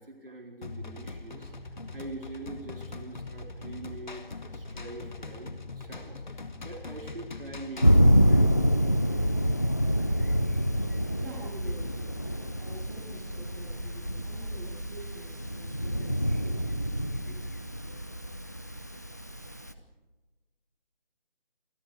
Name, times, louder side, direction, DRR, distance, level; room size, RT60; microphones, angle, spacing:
voice 1, 0.0-1.7 1.9-8.8, right 2 dB, 65° right, 1 dB, 4.4 m, -44 dB
sound 1, 0.6-8.0, left 3 dB, 50° left, 1.9 m, -41 dB
Thunder, 7.8-19.7, equal, 15° left, 0.6 m, -26 dB
voice 2, 11.1-12.1 12.6-16.5 17.2-17.4, right 1 dB, 20° right, -1 dB, 7.3 m, -47 dB
27.5 x 22.5 x 5.0 m, 1.2 s
figure-of-eight pair, 160°, 30 cm